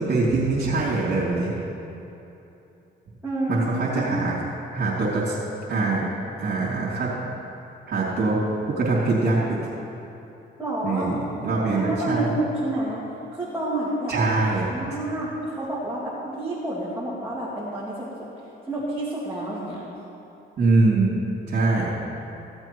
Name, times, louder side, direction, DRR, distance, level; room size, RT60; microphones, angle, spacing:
voice 1, 0.0-1.5 3.5-4.3 4.7-5.3 5.7-6.0 6.4-7.1 7.9-8.4 8.7-9.6 10.8-12.3 14.1-14.7 20.6-21.2 21.5-21.9, right 3 dB, 55° right, -9 dB, 3.1 m, -23 dB
voice 2, 3.2-4.0 10.6-11.1 11.7-13.0 13.3-14.4 14.7-18.3 18.6-19.9, right 2 dB, 10° right, -8 dB, 2.5 m, -29 dB
16.0 x 7.9 x 4.7 m, 2.9 s
cardioid pair, 90°, 20 cm